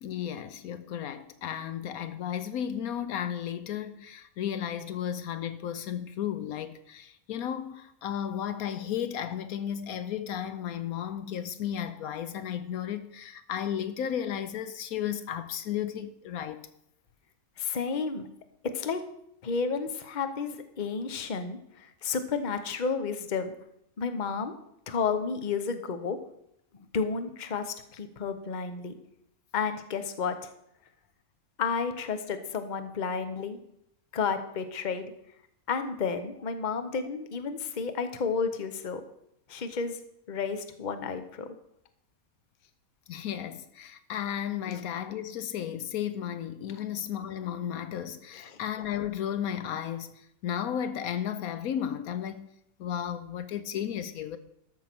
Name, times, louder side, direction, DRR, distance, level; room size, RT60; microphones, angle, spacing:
voice 1, 0.0-16.7 43.1-52.5 52.8-54.4, left 9 dB, 75° left, 1.1 m, -34 dB
voice 2, 17.6-18.3 18.6-19.0 19.4-23.5 24.0-24.5 24.9-26.2 26.9-28.9 29.5-30.5 31.6-33.6 34.1-35.1 35.7-39.0 39.5-40.0 40.3-41.5 44.7-44.8, left 5 dB, 35° left, 0.9 m, -31 dB
13.0 x 5.9 x 6.0 m
omnidirectional pair, 1.5 m